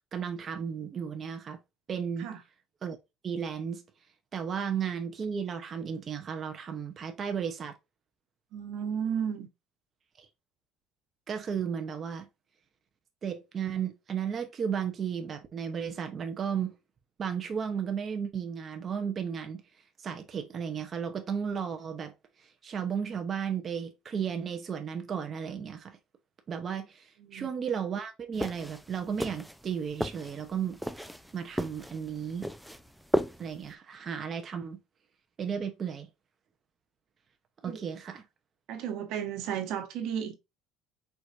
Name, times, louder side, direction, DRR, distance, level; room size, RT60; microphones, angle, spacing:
voice 1, 0.1-1.6 1.9-2.3 2.8-3.0 3.2-3.8 4.3-7.7 10.2-10.3 11.3-12.3 13.2-16.7 17.2-19.6 20.0-22.1 22.4-26.0 26.5-31.1 31.3-32.5 33.4-34.8 35.4-36.1 37.6-38.2, right 7 dB, 35° right, 0.8 m, -34 dB
voice 2, 8.5-9.5 27.2-27.5 37.6-38.2 38.7-40.4, right 8 dB, 70° right, 1.2 m, -34 dB
sound 1, 28.3-33.7, equal, ahead, 0.4 m, -35 dB
4.7 x 4.0 x 2.5 m
cardioid pair, 125°, 0 cm